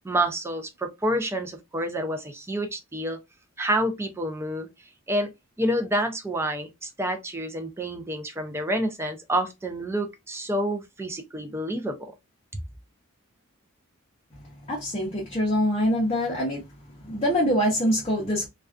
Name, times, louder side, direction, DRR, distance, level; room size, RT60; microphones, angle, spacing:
voice 1, 0.0-3.2 3.6-4.7 5.1-5.3 5.6-12.1, right 1 dB, 10° right, 0.4 m, -28 dB
voice 2, 14.7-16.6 17.1-18.5, equal, 30° left, 0.7 m, -24 dB
2.3 x 2.3 x 2.3 m
head